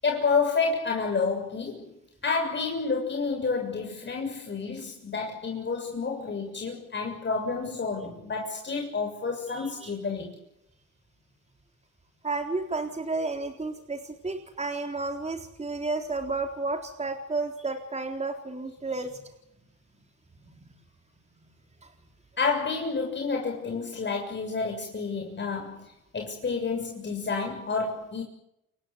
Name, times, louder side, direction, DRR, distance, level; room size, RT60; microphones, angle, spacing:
voice 1, 0.0-1.9 2.2-10.4 22.4-28.2, left 4 dB, 35° left, 6.9 m, -29 dB
voice 2, 9.5-9.9 12.2-19.3, right 3 dB, 20° right, 4.1 m, -32 dB
30.0 x 16.0 x 9.5 m
cardioid pair, 90°, 30 cm